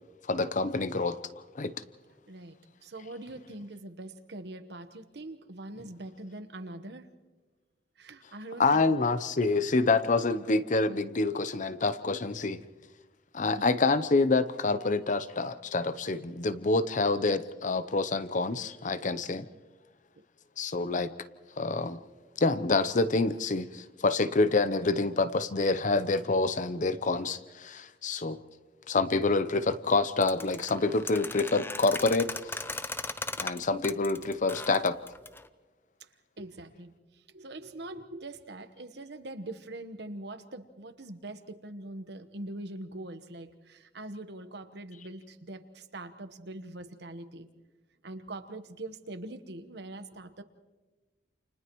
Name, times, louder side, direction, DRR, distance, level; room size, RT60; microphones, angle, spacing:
voice 1, 0.3-1.2 1.5-1.7 8.6-12.6 13.3-19.5 20.6-21.1 21.6-22.0 22.4-28.4 28.9-32.5 33.4-35.0, left 3 dB, 45° left, 13 dB, 0.8 m, -27 dB
voice 2, 2.8-7.1 8.0-8.8 12.6-12.8 13.6-13.7 36.0-36.1 36.4-47.5 48.0-50.4, right 2 dB, 70° right, 9 dB, 1.2 m, -43 dB
sound 1, 30.2-35.5, left 3 dB, 15° left, 0.6 m, -38 dB
29.0 x 29.0 x 3.1 m, 1.2 s
head